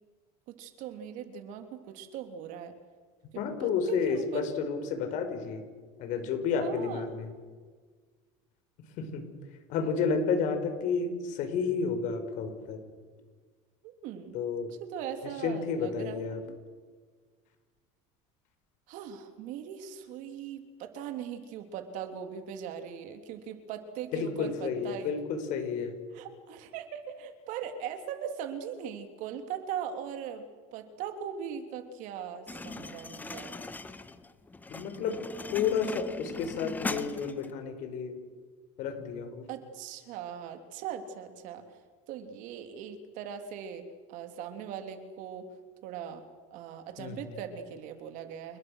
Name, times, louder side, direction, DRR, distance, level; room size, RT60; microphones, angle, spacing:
voice 1, 0.5-2.7 3.6-4.4 6.6-7.1 13.8-14.4 14.8-16.6 18.9-25.2 26.1-33.6 39.5-41.8 42.1-45.5 45.8-46.2 46.5-48.6, right 8 dB, 60° right, 7 dB, 3.2 m, -40 dB
voice 2, 3.3-5.6 6.0-7.3 9.0-9.2 9.7-12.8 14.3-14.7 15.2-16.4 24.1-26.0 34.7-35.2 35.5-38.1 38.8-39.5 47.0-47.4, left 5 dB, 60° left, 7 dB, 5.0 m, -31 dB
sound 1, 32.5-37.5, left 3 dB, 10° left, 1.3 m, -40 dB
29.0 x 20.5 x 6.5 m, 1.5 s
cardioid pair, 135°, 15 cm